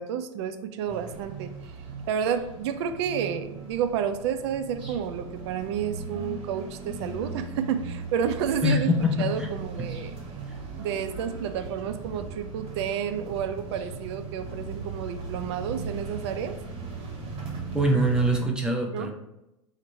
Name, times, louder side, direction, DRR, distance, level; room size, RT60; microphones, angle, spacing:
voice 1, 0.0-1.7 2.1-10.2 10.8-16.6 18.9-19.1, right 8 dB, 55° right, 9 dB, 0.4 m, -30 dB
sound 1, 0.9-18.4, right 4 dB, 35° right, 0.9 m, -38 dB
voice 2, 8.6-9.5 17.7-19.1, equal, 5° right, 1 dB, 0.6 m, -23 dB
2.9 x 2.1 x 4.1 m, 0.91 s
figure-of-eight pair, 85°, 17 cm